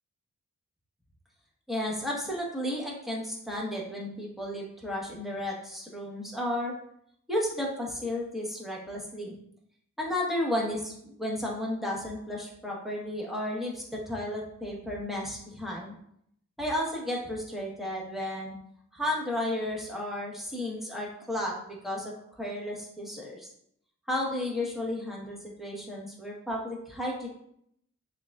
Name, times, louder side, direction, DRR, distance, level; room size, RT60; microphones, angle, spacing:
voice 1, 1.7-6.7 7.3-9.4 10.0-15.9 16.6-18.6 18.9-23.5 24.1-27.3, left 1 dB, ahead, -3 dB, 1.0 m, -33 dB
5.8 x 2.5 x 2.3 m, 0.71 s
wide cardioid pair, 55°, 33 cm